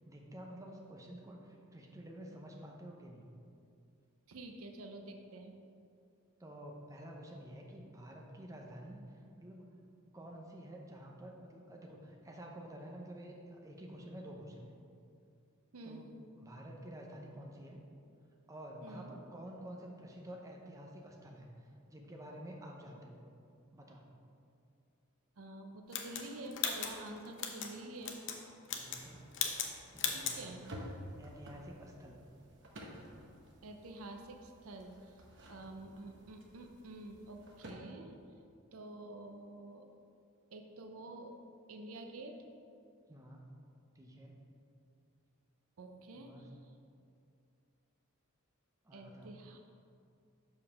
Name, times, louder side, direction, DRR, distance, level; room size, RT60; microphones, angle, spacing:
voice 1, 0.0-3.3 6.4-9.7 10.1-14.7 15.8-17.8 18.5-23.2 23.7-24.1 28.7-29.2 29.9-30.5 31.2-32.2 43.1-43.5 43.9-44.4 46.2-46.6 48.8-49.4, right 1 dB, 15° right, 0 dB, 0.7 m, -50 dB
voice 2, 4.3-5.5 15.7-16.1 18.8-19.1 25.4-28.2 30.1-30.7 33.6-35.2 35.5-38.1 38.7-39.9 40.5-41.4 41.7-42.4 45.8-46.5 48.9-49.6, right 2 dB, 75° right, 4 dB, 0.6 m, -48 dB
sound 1, 25.9-27.7 28.0-28.4 28.6-29.1 29.3-29.7 30.0-30.4, left 7 dB, 60° left, 0.7 m, -37 dB
sound 2, 28.8-37.7, equal, 55° right, 1.0 m, -53 dB
5.3 x 4.9 x 6.3 m, 2.4 s
head